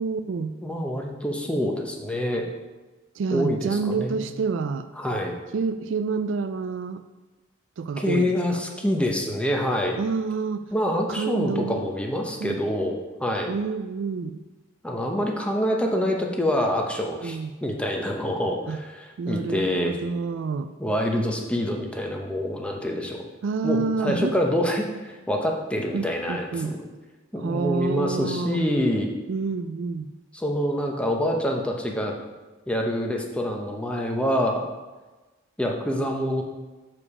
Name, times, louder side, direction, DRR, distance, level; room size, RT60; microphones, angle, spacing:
voice 1, 0.0-0.5 3.2-4.9 5.5-7.0 7.8-8.6 10.0-10.7 11.1-11.9 12.4-12.6 13.5-14.4 17.2-17.5 18.7-18.8 19.2-20.7 23.4-24.3 25.9-26.7 27.4-28.6 29.3-30.1, right 4 dB, 65° right, 10 dB, 0.3 m, -28 dB
voice 2, 0.6-2.5 3.3-4.3 5.0-5.4 8.0-10.0 10.7-13.5 14.8-20.0 20.8-23.3 23.6-24.9 25.3-26.9 27.3-29.1 30.3-32.1 32.7-34.6 35.6-36.4, equal, 5° left, 1 dB, 0.8 m, -26 dB
7.1 x 4.9 x 4.8 m, 1.2 s
head